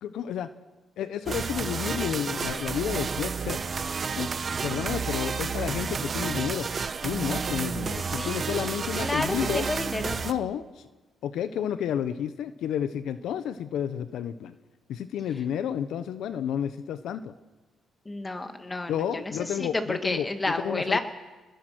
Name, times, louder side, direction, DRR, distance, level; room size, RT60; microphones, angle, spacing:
voice 1, 0.0-0.5 1.0-3.6 4.2-4.3 4.6-6.7 7.0-9.7 10.2-10.9 11.2-14.5 14.9-17.3 18.9-21.0, left 9 dB, 80° left, 12 dB, 1.0 m, -31 dB
sound 1, 1.3-10.3, right 5 dB, 40° right, 1.2 m, -31 dB
voice 2, 8.0-8.4 9.0-10.2 18.1-18.9 19.2-21.0, left 2 dB, 20° left, 6 dB, 2.6 m, -30 dB
27.5 x 21.0 x 6.3 m, 1.2 s
cardioid pair, 90°, 0 cm